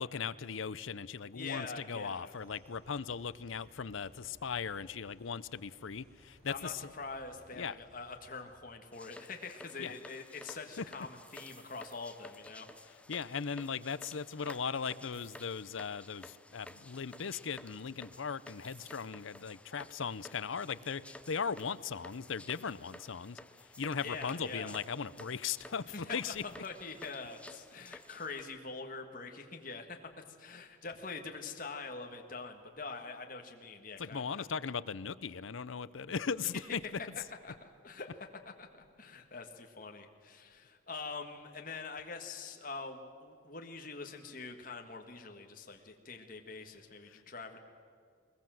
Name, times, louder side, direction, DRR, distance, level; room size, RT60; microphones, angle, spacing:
voice 1, 0.0-6.8 7.6-7.8 9.8-9.9 10.8-10.9 13.1-23.4 23.8-26.4 34.0-36.8, left 6 dB, 85° left, 17 dB, 0.7 m, -38 dB
voice 2, 1.3-2.3 6.4-12.7 24.0-24.7 25.8-34.4 37.1-38.7 39.0-47.6, left 4 dB, 45° left, 3 dB, 1.8 m, -44 dB
sound 1, 2.2-8.6, equal, 50° right, 6.6 m, -63 dB
sound 2, 8.9-28.4, left 1 dB, 5° left, 0.6 m, -54 dB
sound 3, 11.2-12.3 15.1-15.6 18.5-19.2, right 4 dB, 25° right, 2.6 m, -63 dB
21.5 x 20.5 x 7.7 m, 2.3 s
head